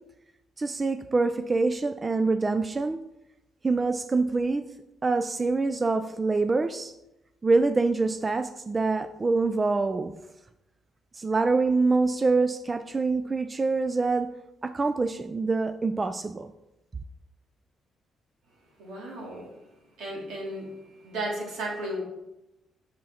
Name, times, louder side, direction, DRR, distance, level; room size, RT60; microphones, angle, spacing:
voice 1, 0.6-3.0 3.6-4.6 5.0-6.9 7.4-10.1 11.1-14.3 14.6-16.5, right 3 dB, 25° right, 10 dB, 0.3 m, -25 dB
voice 2, 18.8-19.5 20.0-20.7 21.0-22.0, right 1 dB, 85° right, -2 dB, 2.3 m, -34 dB
6.0 x 5.9 x 4.2 m, 0.93 s
cardioid pair, 90°, 0 cm